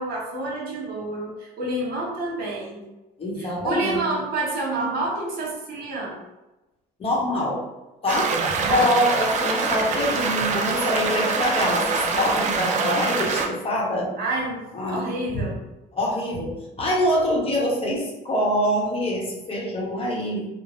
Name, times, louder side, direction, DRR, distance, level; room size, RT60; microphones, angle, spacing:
voice 1, 0.0-2.8 3.4-6.2 8.6-8.9 14.2-15.6, right 2 dB, 65° right, -4 dB, 1.1 m, -28 dB
voice 2, 3.2-4.0 7.0-7.6 8.0-8.3 8.7-14.1 14.7-15.5 15.9-20.5, left 1 dB, 35° left, -3 dB, 0.8 m, -25 dB
sound 1, 8.1-13.5, right 4 dB, 45° right, 0.4 m, -24 dB
3.2 x 2.0 x 2.5 m, 1.0 s
cardioid pair, 110°, 17 cm